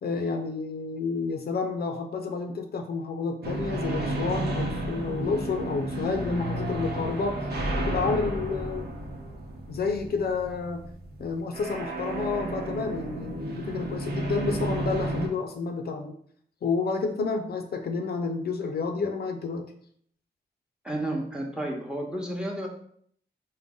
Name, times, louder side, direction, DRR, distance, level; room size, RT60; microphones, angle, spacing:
voice 1, 0.0-7.5 7.9-8.9 9.7-10.9 11.2-16.1 16.6-19.7, left 4 dB, 70° left, 5 dB, 0.4 m, -30 dB
sound 1, 3.4-15.3, right 1 dB, 75° right, 0.7 m, -32 dB
voice 2, 20.8-22.7, right 1 dB, 5° right, 1 dB, 0.9 m, -31 dB
3.7 x 2.1 x 3.6 m, 0.63 s
cardioid pair, 60°, 17 cm